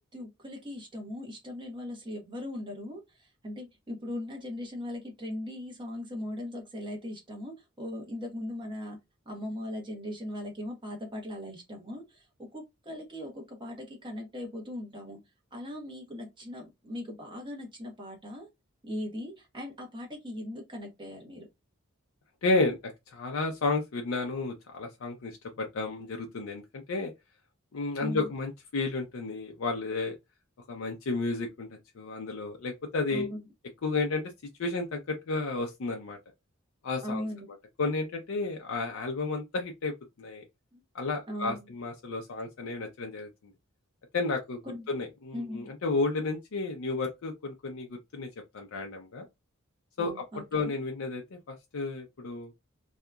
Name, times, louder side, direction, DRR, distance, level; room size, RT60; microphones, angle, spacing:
voice 1, 0.0-9.0 9.3-15.2 15.5-18.5 18.8-21.5 28.0-28.3 33.1-33.4 37.0-37.5 40.7-40.8 41.3-41.7 44.7-44.8 45.3-45.7 50.0-50.7, left 1 dB, 25° right, 0.9 m, -39 dB
voice 2, 22.4-27.1 27.7-30.2 30.7-31.7 31.9-33.3 33.8-34.3 34.6-36.2 36.8-37.3 37.8-40.4 40.9-43.3 44.1-44.6 44.9-48.3 48.5-49.3 50.0-50.2 50.5-52.5, left 3 dB, 70° left, 0.5 m, -32 dB
2.8 x 2.4 x 2.2 m
head